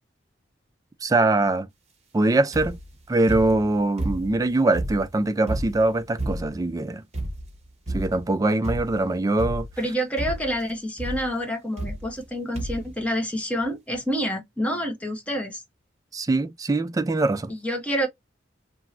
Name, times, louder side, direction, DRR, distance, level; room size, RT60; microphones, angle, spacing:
voice 1, 1.0-1.7 2.1-2.8 3.1-7.0 7.9-9.7 16.1-17.5, right 2 dB, 20° right, 0.3 m, -22 dB
sound 1, 2.5-2.9 3.3-4.4 4.7-6.7 7.1-7.6 7.9-8.3 8.6-9.1 9.4-9.9 10.2-10.6 11.0-11.3 11.8-12.3 12.5-12.9 13.6-13.7 13.9-14.0, right 1 dB, 35° right, 1.0 m, -31 dB
voice 2, 9.8-15.6 17.5-18.1, equal, 5° left, 0.8 m, -28 dB
3.0 x 2.7 x 2.4 m
head